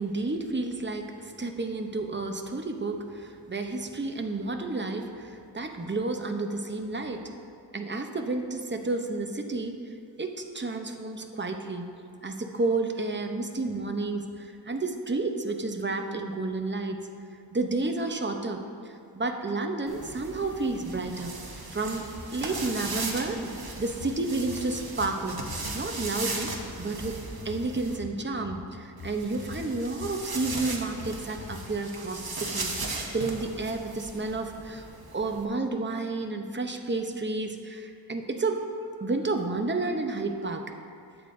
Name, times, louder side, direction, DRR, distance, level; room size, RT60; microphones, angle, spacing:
voice 1, 0.0-7.3 7.7-9.8 10.2-11.9 12.2-17.0 17.5-21.3 21.7-22.0 22.3-23.4 23.8-25.4 25.7-26.5 26.8-27.2 27.4-34.9 35.1-38.6 39.0-40.7, right 3 dB, 25° right, 4 dB, 0.7 m, -31 dB
sound 1, 19.9-28.0 29.0-35.5, right 3 dB, 55° right, 1.1 m, -37 dB
sound 2, 23.8-31.7, left 5 dB, 55° left, 0.7 m, -44 dB
11.5 x 8.5 x 2.6 m, 2.4 s
wide cardioid pair, 45°, 43 cm